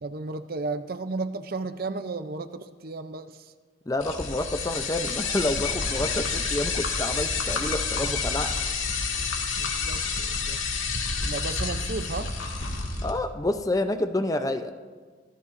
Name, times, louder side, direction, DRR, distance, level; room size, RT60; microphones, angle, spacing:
voice 1, 0.0-3.5 9.6-10.6 11.2-12.3, right 3 dB, 45° right, 10 dB, 0.6 m, -34 dB
voice 2, 3.9-8.5 13.0-14.7, left 1 dB, 15° left, 8 dB, 0.6 m, -28 dB
sound 1, 4.0-13.1, left 4 dB, 80° left, 2.0 m, -29 dB
25.0 x 14.5 x 2.6 m, 1.5 s
head